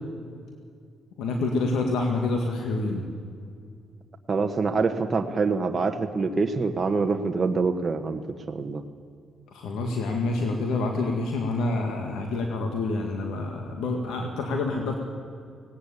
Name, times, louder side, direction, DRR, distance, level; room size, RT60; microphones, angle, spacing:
voice 1, 1.2-3.0 9.5-14.9, left 3 dB, 85° left, 3 dB, 2.0 m, -27 dB
voice 2, 4.3-8.2 8.5-8.8, right 4 dB, 30° right, 4 dB, 1.3 m, -25 dB
18.5 x 17.5 x 8.6 m, 2.3 s
cardioid pair, 90°, 0 cm